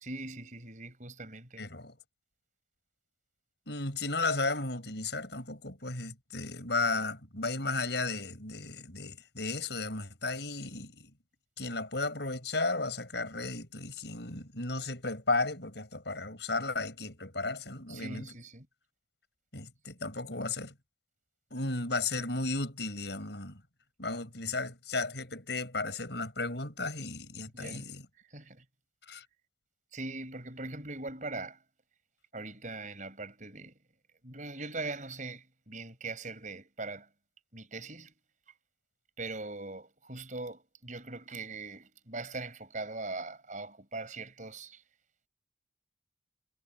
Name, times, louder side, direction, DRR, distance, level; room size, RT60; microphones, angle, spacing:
voice 1, 0.0-1.7 17.9-18.7 27.5-28.6 29.9-31.6 32.3-33.7 34.2-37.1 37.5-38.1 39.2-44.8, right 3 dB, 45° right, 5.9 m, -41 dB
voice 2, 1.6-1.9 3.7-11.1 11.6-18.3 19.5-20.7 21.5-23.6 24.0-28.0 29.1-29.2, left 3 dB, 70° left, 6.3 m, -34 dB
head